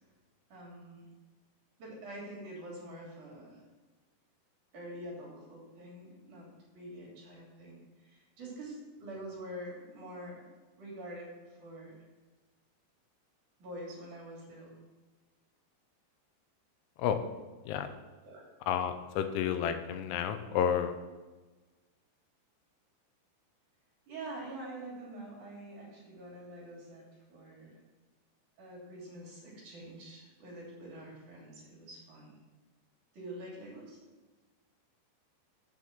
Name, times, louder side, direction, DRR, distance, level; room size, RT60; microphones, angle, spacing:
voice 1, 0.5-1.1 1.8-3.6 4.7-6.5 6.7-10.5 10.8-12.0 13.6-14.8 18.2-18.5 24.1-27.8 28.6-32.4 33.1-34.0, right 1 dB, 45° right, -3 dB, 3.9 m, -46 dB
voice 2, 18.7-21.0, left 8 dB, 85° left, 8 dB, 3.1 m, -31 dB
9.0 x 5.9 x 7.3 m, 1.3 s
omnidirectional pair, 5.4 m